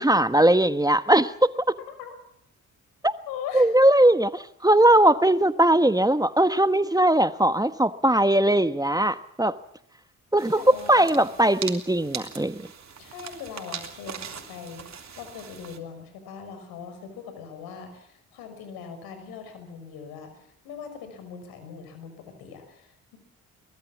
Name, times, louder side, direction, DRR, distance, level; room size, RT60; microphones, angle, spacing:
voice 1, 0.0-1.5 3.0-3.1 3.5-9.5 10.3-12.6, right 1 dB, 10° right, 12 dB, 1.2 m, -20 dB
voice 2, 3.3-3.7 5.7-6.1 10.6-11.3 13.0-23.2, left 7 dB, 80° left, 8 dB, 5.6 m, -41 dB
sound 1, 10.4-15.8, right 7 dB, 50° right, 3.4 m, -40 dB
23.0 x 20.0 x 7.3 m, 0.69 s
hypercardioid pair, 50°, 35 cm